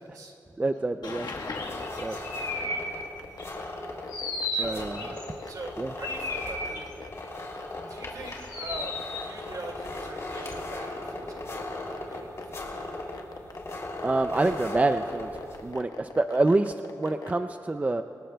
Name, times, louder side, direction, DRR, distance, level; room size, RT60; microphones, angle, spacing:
voice 1, 0.6-1.3 2.0-2.2 4.6-5.1 5.8-5.9 14.0-15.3 15.6-18.0, right 2 dB, 20° right, 9 dB, 0.4 m, -26 dB
sound 1, 1.0-2.9 3.4-3.6 4.1-5.3 6.0-6.9 8.3-9.3 10.3-10.8, left 2 dB, 85° left, 1.4 m, -34 dB
sound 2, 1.3-15.7, left 2 dB, 45° left, 2.8 m, -39 dB
sound 3, 1.7-17.3, left 5 dB, 65° left, 1.1 m, -42 dB
voice 2, 2.4-3.0 4.5-7.0 7.9-8.9 9.2-12.7, right 2 dB, 65° right, 2 dB, 2.1 m, -43 dB
25.0 x 19.0 x 2.3 m, 2.7 s
wide cardioid pair, 115°, 7 cm